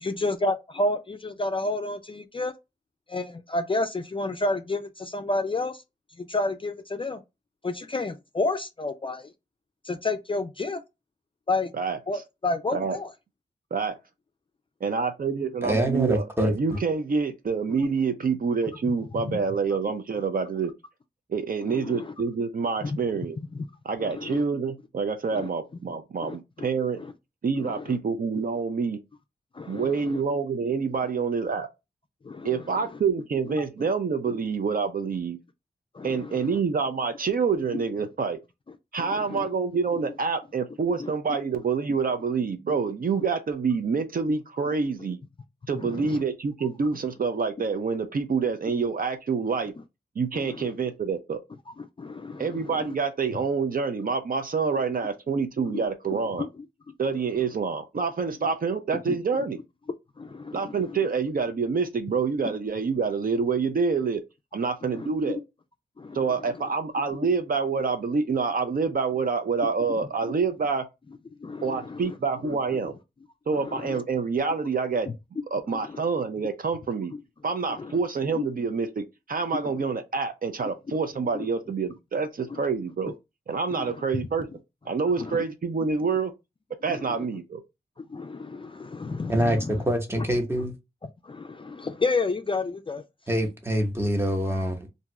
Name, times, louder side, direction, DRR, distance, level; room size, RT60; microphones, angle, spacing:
voice 1, 0.0-2.5 3.1-5.8 6.2-7.2 7.6-9.3 9.8-10.8 11.5-11.7 12.1-13.1 19.1-19.4 21.7-22.1 22.8-23.0 23.5-23.7 24.1-24.4 25.3-25.5 26.2-26.4 27.0-27.1 27.5-28.0 29.5-30.2 32.2-32.5 33.6-33.7 35.9-36.5 37.7-37.8 39.0-39.5 41.0-41.1 45.1-45.2 45.8-46.2 50.4-50.7 51.8-52.9 55.7-55.8 56.4-56.5 59.1-59.2 60.2-61.0 64.9-65.3 66.0-66.2 71.4-72.1 72.4-72.6 73.5-73.9 75.7-76.0 77.7-78.0 78.3-78.4 80.9-81.0 81.3-81.5 82.5-82.6 83.7-84.2 85.2-85.4 86.9-87.3 88.0-89.8 90.2-90.3 91.2-93.0, left 2 dB, 30° left, 0.3 m, -31 dB
voice 2, 14.8-20.7 21.3-23.4 23.9-27.0 27.4-29.0 29.7-31.7 32.4-35.4 36.0-38.4 38.9-45.2 45.7-49.7 50.2-51.4 52.4-56.5 57.0-59.6 60.5-64.2 64.5-65.4 66.1-70.8 71.6-72.9 73.5-75.1 75.5-77.1 77.4-83.1 83.5-84.5 84.9-86.3 86.8-87.6, right 5 dB, 55° right, 0.5 m, -27 dB
voice 3, 15.6-16.5 89.3-90.7 93.3-94.9, right 1 dB, 15° right, 0.8 m, -25 dB
2.6 x 2.3 x 3.0 m
wide cardioid pair, 70°, 18 cm